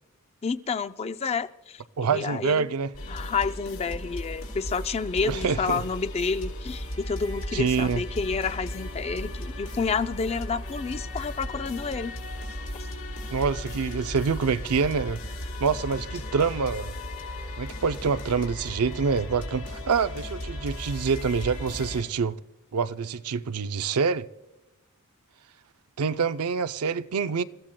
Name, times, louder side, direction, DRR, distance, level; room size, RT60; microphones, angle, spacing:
voice 1, 0.4-2.7 3.1-12.1 12.8-12.9, left 5 dB, 30° left, 0.4 m, -29 dB
voice 2, 2.0-2.9 5.2-5.8 7.5-8.0 13.3-15.2 15.6-16.9 17.6-22.4 22.7-24.3 26.0-27.4, right 5 dB, 90° right, 0.5 m, -26 dB
sound 1, 2.9-22.0, left 1 dB, 75° left, 4.5 m, -36 dB
29.0 x 15.0 x 2.2 m
head